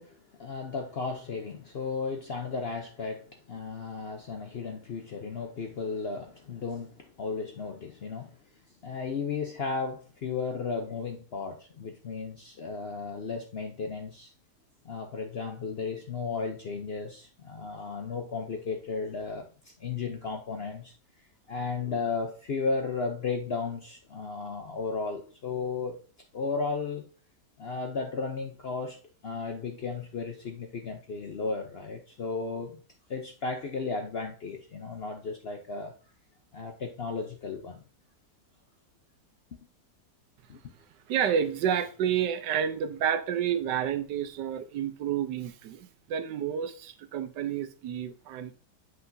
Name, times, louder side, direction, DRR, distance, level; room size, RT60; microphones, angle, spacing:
voice 1, 0.0-8.4 8.8-14.3 14.8-20.9 21.5-26.0 26.3-27.1 27.6-29.0 29.2-32.8 33.1-35.9 36.5-37.8 40.5-40.6, left 4 dB, 60° left, 0.6 m, -34 dB
voice 2, 41.1-48.6, right 8 dB, 85° right, 1.3 m, -30 dB
7.9 x 5.8 x 2.6 m
omnidirectional pair, 1.8 m